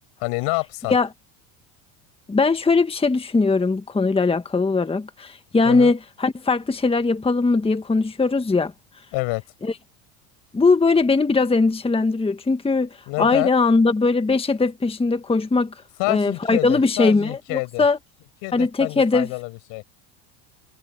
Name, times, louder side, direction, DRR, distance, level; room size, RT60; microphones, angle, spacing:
voice 1, 0.2-1.0 5.6-5.9 9.1-9.4 13.1-13.5 16.0-17.8 18.4-19.8, left 28 dB, 70° left, 6.1 m, -27 dB
voice 2, 2.3-8.7 9.6-9.7 10.5-15.7 16.1-18.0 18.5-19.3, left 3 dB, 10° left, 1.4 m, -20 dB
supercardioid pair, 95°, 45 cm